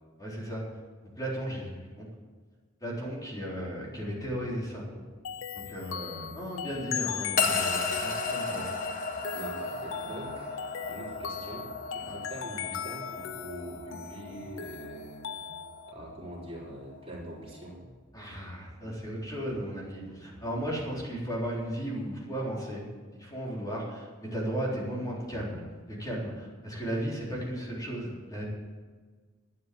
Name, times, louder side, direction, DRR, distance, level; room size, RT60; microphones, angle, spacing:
voice 1, 0.2-0.6 1.2-1.7 2.0-2.1 2.8-4.9 5.7-8.6 12.1-12.2 18.1-22.8 23.1-28.4, equal, 20° left, -5 dB, 4.0 m, -35 dB
sound 1, 3.7-12.5 13.1-21.8, equal, 10° right, 2.8 m, -56 dB
sound 2, 5.2-15.9, left 9 dB, 70° left, 0.5 m, -39 dB
sound 3, 7.4-17.7, left 4 dB, 45° left, 1.5 m, -35 dB
voice 2, 9.3-10.5 10.9-15.2 15.9-17.8, right 1 dB, 30° right, -5 dB, 3.9 m, -43 dB
12.0 x 9.7 x 7.8 m, 1.4 s
head